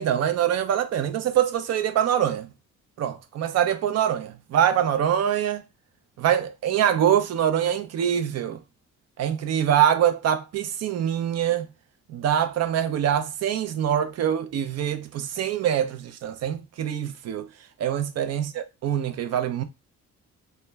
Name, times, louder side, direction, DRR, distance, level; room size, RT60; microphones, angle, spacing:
voice 1, 0.0-2.5 3.0-5.6 6.2-8.6 9.2-11.7 12.1-17.5 17.8-19.6, right 9 dB, 60° right, 0.5 m, -24 dB
2.9 x 2.2 x 3.3 m
cardioid pair, 90°, 30 cm